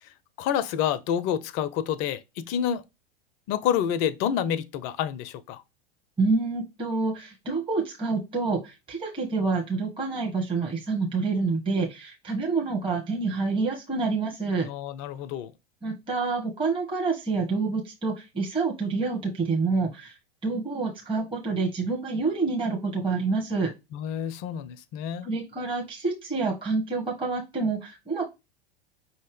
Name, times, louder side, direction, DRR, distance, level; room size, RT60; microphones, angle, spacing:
voice 1, 0.0-2.8 3.5-5.6 14.6-15.5 23.9-25.3, left 9 dB, 40° left, 0.6 m, -28 dB
voice 2, 6.2-14.7 15.8-20.1 20.4-23.7 25.2-28.2, right 4 dB, 15° right, 1.2 m, -27 dB
5.5 x 2.8 x 3.2 m
figure-of-eight pair, 90°, 32 cm